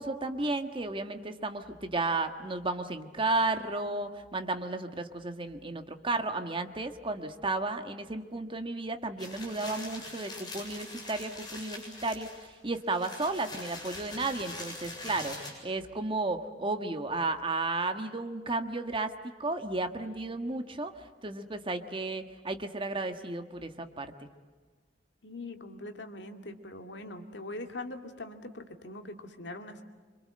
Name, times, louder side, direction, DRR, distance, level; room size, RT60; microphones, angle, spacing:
voice 1, 0.0-19.1 19.4-24.3, right 2 dB, 30° right, 7 dB, 1.6 m, -33 dB
sound 1, 9.2-15.5, left 2 dB, 25° left, 7.6 m, -43 dB
voice 2, 25.2-29.8, left 2 dB, 65° left, 6 dB, 2.4 m, -42 dB
26.5 x 26.0 x 7.7 m, 1.5 s
head